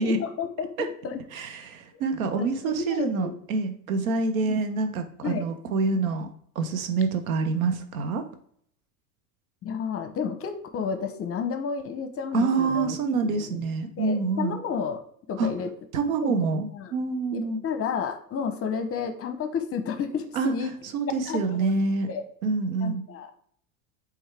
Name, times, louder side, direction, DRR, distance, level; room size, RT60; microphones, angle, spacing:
voice 1, 0.0-1.2 2.3-3.3 4.4-4.6 5.2-5.5 9.6-13.0 13.3-13.7 14.0-15.0 15.3-15.7 16.2-16.3 16.7-16.9 17.3-20.7 21.3-21.7 22.1-22.2 22.8-23.3, left 6 dB, 35° left, 9 dB, 0.7 m, -31 dB
voice 2, 1.3-6.3 6.6-8.2 12.3-14.6 15.4-15.5 15.9-17.6 20.3-20.5 20.8-22.1 22.4-23.0, right 4 dB, 85° right, 8 dB, 0.8 m, -26 dB
4.6 x 3.4 x 3.3 m, 0.62 s
hypercardioid pair, 85°, 41 cm